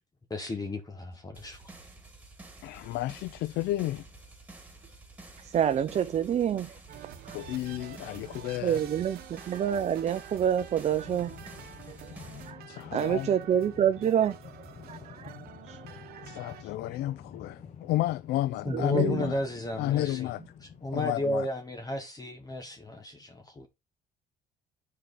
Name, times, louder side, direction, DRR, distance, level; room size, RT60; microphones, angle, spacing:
voice 1, 0.3-1.6 18.6-20.3 20.8-23.7, left 1 dB, 20° left, 1.2 m, -33 dB
sound 1, 1.3-12.5, right 2 dB, 10° right, 2.4 m, -50 dB
voice 2, 2.6-4.1 7.3-8.8 12.7-13.3 16.2-19.4 19.8-20.4 20.9-21.5, left 15 dB, 75° left, 0.4 m, -31 dB
voice 3, 5.4-6.7 7.2-7.4 8.6-11.3 11.9-12.1 12.4-12.6 12.9-14.4 14.9-15.3 15.7-15.8 16.1-16.3 18.7-19.3, right 9 dB, 40° right, 0.6 m, -27 dB
sound 2, 6.9-16.6, right 9 dB, 65° right, 1.2 m, -48 dB
sound 3, 10.9-21.0, left 7 dB, 45° left, 1.4 m, -49 dB
8.8 x 4.8 x 3.9 m
cardioid pair, 110°, 17 cm